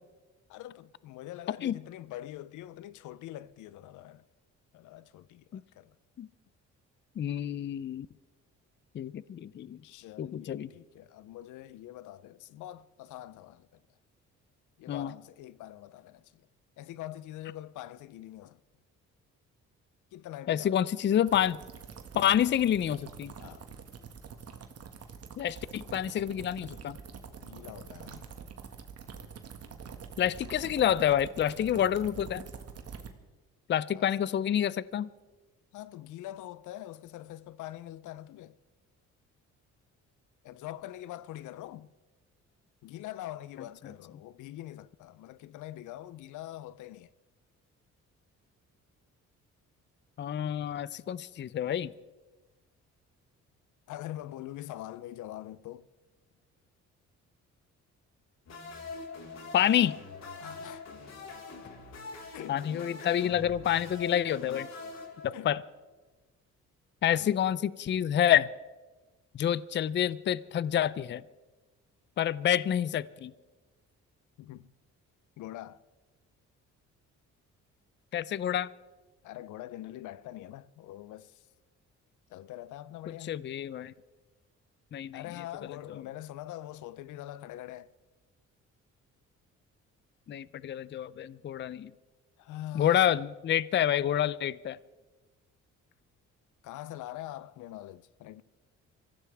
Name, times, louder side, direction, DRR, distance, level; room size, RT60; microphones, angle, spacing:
voice 1, 0.5-4.3 4.7-6.0 9.8-13.8 14.8-16.5 16.8-18.6 20.1-20.9 23.4-23.7 27.4-28.3 33.9-34.1 35.7-38.6 40.4-41.9 42.8-47.1 53.9-55.9 60.4-60.9 62.3-62.6 65.3-65.5 67.1-67.4 67.9-68.1 74.4-74.7 75.4-75.8 79.2-81.5 82.3-83.4 85.1-87.9 92.4-93.1 96.6-98.4, left 14 dB, 80° left, 0.6 m, -44 dB
voice 2, 7.2-8.1 8.9-9.8 10.2-10.7 14.9-15.1 20.5-21.6 22.1-23.3 25.4-27.0 30.2-32.5 33.7-35.1 50.2-51.9 59.5-60.0 62.5-64.7 65.2-65.6 67.0-68.5 69.3-71.2 72.2-73.3 78.1-78.7 83.1-83.9 84.9-85.2 90.3-91.9 92.7-94.8, left 10 dB, 40° left, 0.5 m, -28 dB
sound 1, 21.3-33.1, right 6 dB, 55° right, 1.7 m, -46 dB
sound 2, 58.5-65.8, left 4 dB, 60° left, 4.0 m, -44 dB
24.5 x 15.5 x 3.4 m
cardioid pair, 90°, 30 cm